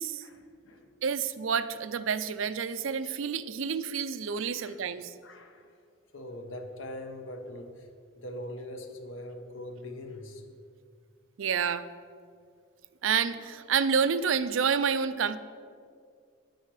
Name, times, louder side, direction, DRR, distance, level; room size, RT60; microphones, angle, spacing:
voice 1, 0.2-1.0 4.6-4.8 5.2-5.8 6.1-7.9 8.2-10.4, left 1 dB, 80° left, 6 dB, 1.1 m, -42 dB
voice 2, 1.0-5.1 11.4-11.8 13.0-15.4, right 6 dB, 85° right, 13 dB, 0.5 m, -29 dB
10.5 x 9.2 x 4.9 m, 2.2 s
head